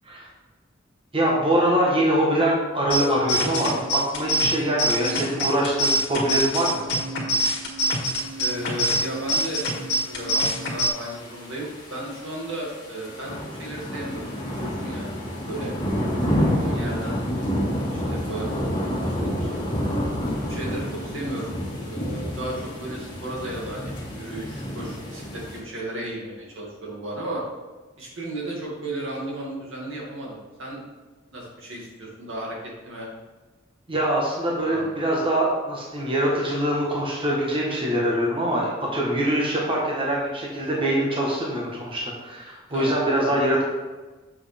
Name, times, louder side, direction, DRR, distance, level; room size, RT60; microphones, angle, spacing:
voice 1, 1.1-6.8 33.9-43.6, right 1 dB, 25° right, -3 dB, 1.3 m, -24 dB
sound 1, 2.9-10.9, right 1 dB, 60° left, 1.7 m, -25 dB
sound 2, 8.4-25.6, equal, 20° left, 1.8 m, -29 dB
voice 2, 8.4-9.6 10.1-15.7 16.2-17.2 17.7-19.5 20.5-21.6 21.8-22.5 22.8-27.4 28.0-30.8 31.3-32.6 32.8-33.1 34.6-35.0 42.7-43.3, right 1 dB, 75° right, -3 dB, 2.3 m, -35 dB
7.3 x 6.3 x 3.5 m, 1.2 s
head